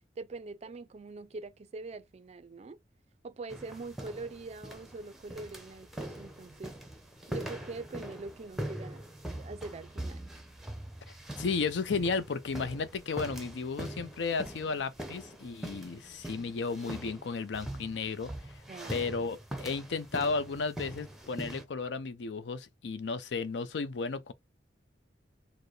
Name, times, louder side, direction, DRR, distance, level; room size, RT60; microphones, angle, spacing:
voice 1, 0.2-2.8 3.2-6.8 7.3-9.0 9.3-10.3 18.7-19.1, right 3 dB, 35° right, 0.4 m, -43 dB
sound 1, 3.5-21.6, right 1 dB, ahead, 0.6 m, -42 dB
voice 2, 11.4-18.3 18.9-24.3, left 4 dB, 85° left, 0.5 m, -33 dB
4.4 x 2.1 x 3.1 m
head